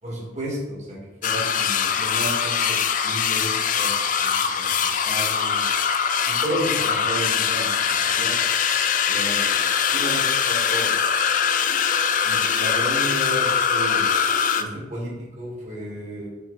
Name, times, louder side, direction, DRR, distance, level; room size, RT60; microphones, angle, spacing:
voice 1, 0.0-5.7 6.2-8.4 9.1-9.4 9.9-10.9 12.2-14.1 14.5-16.3, right 1 dB, 35° right, -4 dB, 2.0 m, -32 dB
sound 1, 1.2-14.6, left 7 dB, 40° left, 0.3 m, -22 dB
6.0 x 4.1 x 4.2 m, 1.1 s
head